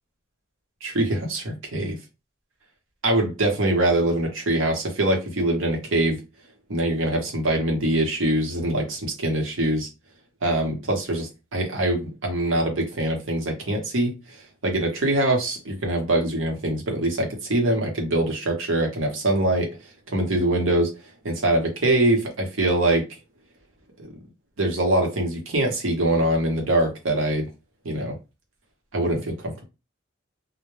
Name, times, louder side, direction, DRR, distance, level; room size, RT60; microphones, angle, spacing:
voice 1, 0.8-2.0 3.0-6.2 6.7-9.9 10.4-19.8 20.1-20.9 21.2-23.0 24.6-27.5 27.8-28.1 28.9-29.6, right 1 dB, 75° right, 0.8 m, -23 dB
2.1 x 2.1 x 3.1 m
head